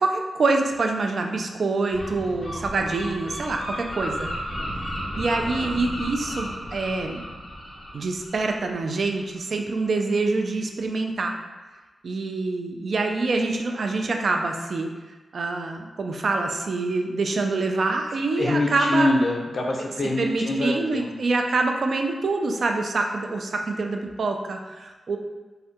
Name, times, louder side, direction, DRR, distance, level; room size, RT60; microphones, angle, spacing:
voice 1, 0.0-4.3 4.9-7.2 7.9-11.4 12.0-14.9 15.3-19.1 20.2-25.2, right 3 dB, 65° right, 3 dB, 0.3 m, -25 dB
Gull seagull, 1.9-9.4, equal, 35° left, 0.9 m, -34 dB
voice 2, 18.4-21.1, left 1 dB, 50° left, 0 dB, 0.5 m, -24 dB
2.6 x 2.1 x 3.5 m, 1.2 s
wide cardioid pair, 90°, 0 cm